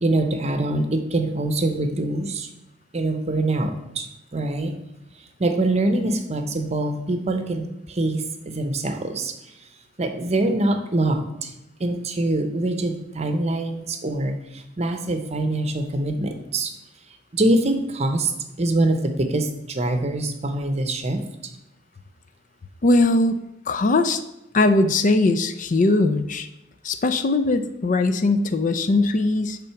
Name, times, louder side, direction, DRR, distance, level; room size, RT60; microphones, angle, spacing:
voice 1, 0.0-2.5 2.9-4.8 5.2-9.6 10.0-11.5 11.8-16.7 17.3-18.3 18.6-21.2, right 2 dB, 35° right, 7 dB, 0.8 m, -24 dB
voice 2, 22.8-23.4 23.7-24.2 24.5-26.5 26.8-29.6, left 2 dB, 40° left, 10 dB, 0.4 m, -20 dB
8.7 x 3.8 x 5.8 m, 0.90 s
head